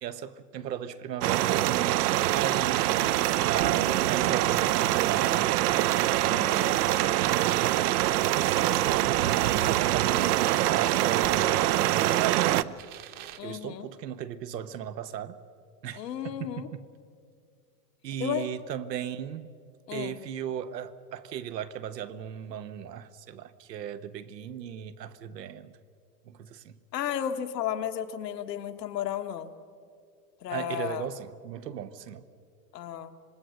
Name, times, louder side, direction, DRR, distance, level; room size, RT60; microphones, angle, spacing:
voice 1, 0.0-5.8 8.3-12.7 13.4-15.4 15.8-16.8 18.0-19.5 19.9-25.8 26.3-26.7 30.5-32.2, right 9 dB, 90° right, 1.2 m, -36 dB
sound 1, 1.2-12.6, right 14 dB, 70° right, 0.7 m, -24 dB
sound 2, 1.7-13.4, right 10 dB, 45° right, 1.3 m, -42 dB
voice 2, 6.2-6.9 13.4-13.9 16.0-16.7 18.2-18.5 19.9-20.2 26.9-29.5 30.4-31.1 32.7-33.2, left 10 dB, 85° left, 1.5 m, -33 dB
26.5 x 20.5 x 6.4 m
supercardioid pair, 130°, 48 cm